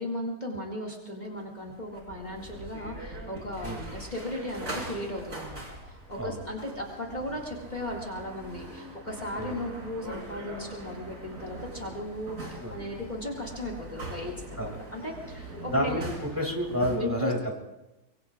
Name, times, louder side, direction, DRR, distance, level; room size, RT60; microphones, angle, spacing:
voice 1, 0.0-16.0 17.0-17.3, left 1 dB, 30° left, 0 dB, 2.3 m, -36 dB
sound 1, 1.4-17.0, right 1 dB, 65° right, 3.9 m, -42 dB
voice 2, 12.6-12.9 14.6-14.8 15.7-17.5, equal, 15° right, 0 dB, 2.5 m, -29 dB
24.5 x 23.0 x 2.5 m, 0.97 s
omnidirectional pair, 1.5 m